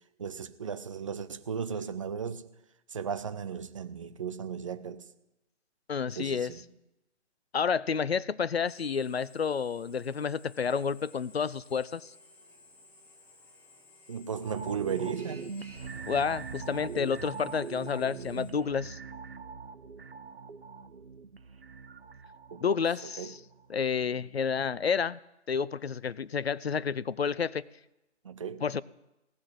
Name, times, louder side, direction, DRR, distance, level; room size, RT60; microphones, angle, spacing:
voice 1, 0.2-2.5 2.9-5.0 6.1-6.6 14.1-15.4 22.5-22.8 23.2-23.3 28.2-28.6, right 7 dB, 25° right, 11 dB, 0.8 m, -36 dB
voice 2, 5.9-6.5 7.5-12.1 16.1-19.0 22.6-23.4 23.7-25.2 25.5-27.6 28.6-28.8, left 6 dB, 60° left, 21 dB, 0.7 m, -30 dB
Drill, 8.7-18.5, left 3 dB, 5° left, 1.3 m, -56 dB
sound 1, 14.4-23.8 24.1-24.2, right 5 dB, 55° right, 1.2 m, -42 dB
17.5 x 6.1 x 9.7 m, 0.94 s
figure-of-eight pair, 145°, 35 cm